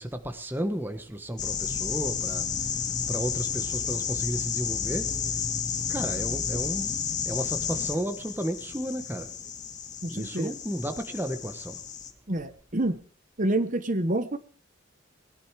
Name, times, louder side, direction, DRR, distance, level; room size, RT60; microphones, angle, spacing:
voice 1, 0.0-2.5 3.1-5.2 5.9-9.3 10.1-11.8, right 1 dB, 10° right, 1.2 m, -33 dB
sound 1, 1.4-12.1, left 7 dB, 35° left, 1.7 m, -31 dB
voice 2, 10.0-10.5 12.3-13.0 13.4-14.4, right 1 dB, 40° right, 1.1 m, -27 dB
21.0 x 11.0 x 4.7 m
head